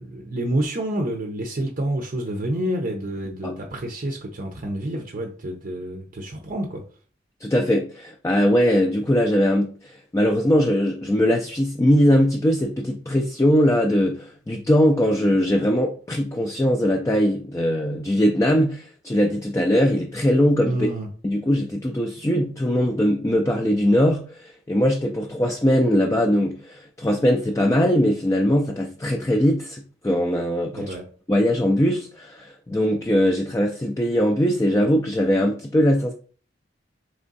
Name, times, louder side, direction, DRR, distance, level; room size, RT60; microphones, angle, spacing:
voice 1, 0.0-6.9 20.7-21.1 30.7-31.1, right 1 dB, 45° right, 0.6 m, -28 dB
voice 2, 7.4-20.9 21.2-30.9 31.3-36.1, equal, 15° left, 0.4 m, -21 dB
3.6 x 3.2 x 3.9 m
head